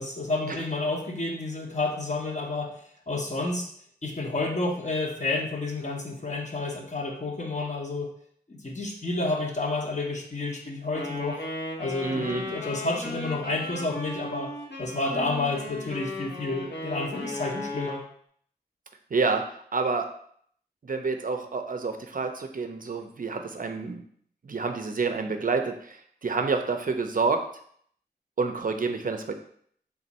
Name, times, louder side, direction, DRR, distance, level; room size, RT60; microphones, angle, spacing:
voice 1, 0.0-2.7 3.1-3.6 4.0-8.1 8.5-11.4 11.8-14.5 14.8-18.0, left 2 dB, 40° left, 1 dB, 0.8 m, -30 dB
Wind instrument woodwind instrument, 10.9-18.0, left 2 dB, 85° left, 0.9 m, -36 dB
voice 2, 12.0-12.4 19.1-19.4 19.7-20.1 20.8-24.0 24.4-27.4 28.4-29.3, right 4 dB, 50° right, 5 dB, 0.4 m, -28 dB
3.5 x 2.5 x 4.0 m, 0.62 s
wide cardioid pair, 75°, 18 cm